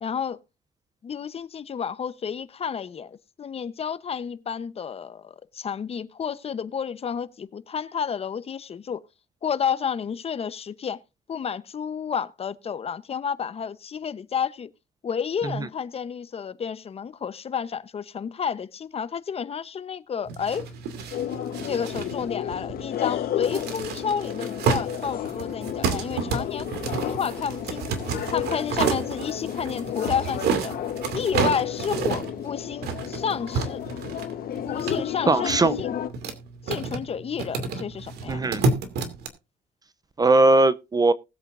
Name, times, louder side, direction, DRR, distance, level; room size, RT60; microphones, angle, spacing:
voice 1, 0.0-0.4 1.0-9.0 9.4-11.0 11.3-14.7 15.0-20.7 21.6-26.7 27.0-27.9 28.3-30.7 31.1-33.8 34.7-35.9 36.7-38.4, left 7 dB, 35° left, 0.9 m, -31 dB
sound 1, 20.3-39.3, right 5 dB, 75° right, 2.4 m, -31 dB
sound 2, 21.1-36.1, left 11 dB, 60° left, 1.2 m, -32 dB
voice 2, 35.3-35.8 38.3-38.6 40.2-41.1, right 2 dB, 20° right, 0.6 m, -19 dB
19.5 x 8.2 x 2.6 m
cardioid pair, 110°, 17 cm